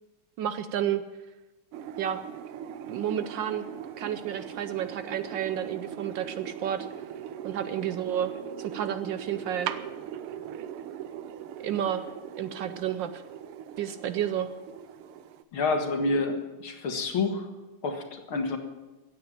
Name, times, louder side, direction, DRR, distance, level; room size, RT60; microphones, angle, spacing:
voice 1, 0.4-1.0 2.0-2.2 2.9-3.7 4.0-6.9 7.4-8.3 8.6-9.7 11.6-12.0 12.4-13.2 13.8-14.5, right 10 dB, 70° right, 11 dB, 1.2 m, -31 dB
sound 1, 1.7-15.4, right 9 dB, 85° right, 1.7 m, -40 dB
voice 2, 15.5-17.5 17.8-18.6, left 3 dB, 70° left, 4 dB, 2.6 m, -28 dB
15.5 x 9.0 x 8.8 m, 1.1 s
omnidirectional pair, 2.4 m